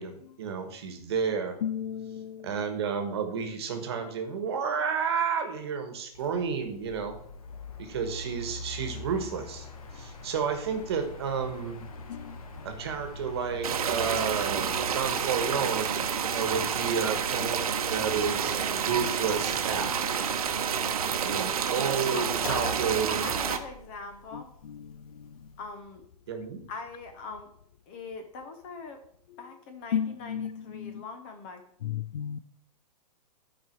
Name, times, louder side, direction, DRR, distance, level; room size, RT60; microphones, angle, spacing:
voice 1, 0.0-1.6 2.4-7.2 7.8-9.7 9.9-11.8 12.6-17.6 17.9-20.0 21.2-23.3 26.3-26.6, right 6 dB, 40° right, 5 dB, 1.4 m, -31 dB
voice 2, 1.6-2.5 12.1-12.4 24.3-24.4 24.7-24.9 29.9-31.0 31.8-32.4, left 9 dB, 80° left, 16 dB, 0.6 m, -33 dB
Mechanical fan, 6.1-25.8, left 2 dB, 60° left, 1.5 m, -44 dB
sound 1, 13.6-23.6, right 7 dB, 60° right, 1.0 m, -29 dB
voice 3, 22.1-24.5 25.6-26.0 26.7-27.5 27.9-29.0 29.4-31.6, left 4 dB, 20° left, 6 dB, 0.7 m, -41 dB
12.0 x 5.0 x 4.5 m, 0.70 s
hypercardioid pair, 180°, 21 cm